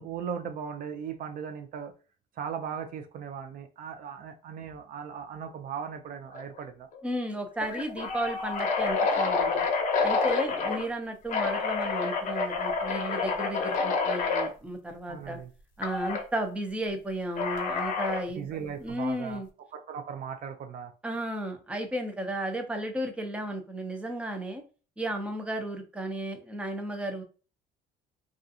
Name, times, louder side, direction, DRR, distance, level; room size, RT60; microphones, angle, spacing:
voice 1, 0.0-1.9 2.4-6.9 15.1-15.5 18.4-19.4 19.7-20.9, right 7 dB, 55° right, 6 dB, 0.4 m, -38 dB
sound 1, 6.3-6.6 6.9-7.0 7.6-10.8 11.3-14.5 15.8-16.2 17.4-18.3, left 4 dB, 50° left, 0.7 m, -28 dB
voice 2, 7.0-9.6 10.0-15.4 15.8-18.4 18.8-19.5 21.0-24.6 25.0-27.2, right 1 dB, 5° right, 4 dB, 0.5 m, -34 dB
2.4 x 2.4 x 2.6 m, 0.35 s
cardioid pair, 110°, 17 cm